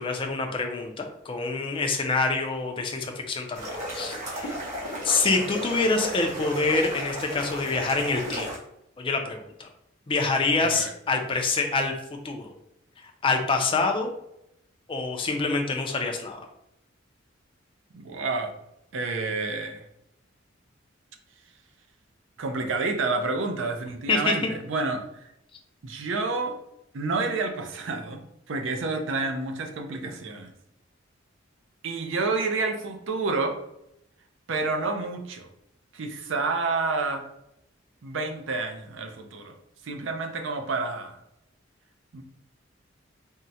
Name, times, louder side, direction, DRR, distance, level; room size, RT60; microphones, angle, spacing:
voice 1, 0.0-4.6 5.0-8.5 9.0-9.7 10.1-11.9 12.2-12.5 13.2-14.1 14.9-16.4 24.1-24.3, left 3 dB, 25° left, 3 dB, 0.4 m, -26 dB
sound 1, 3.5-8.6, equal, 40° right, 1.3 m, -34 dB
voice 2, 10.6-10.9 17.9-18.5 18.9-19.8 22.4-25.0 25.8-26.6 26.9-28.2 28.5-30.5 31.8-33.5 34.5-35.5 35.9-37.2 38.0-39.5 39.8-41.2 42.1-42.2, right 3 dB, 70° right, 4 dB, 0.5 m, -29 dB
3.6 x 2.1 x 2.7 m, 0.79 s
head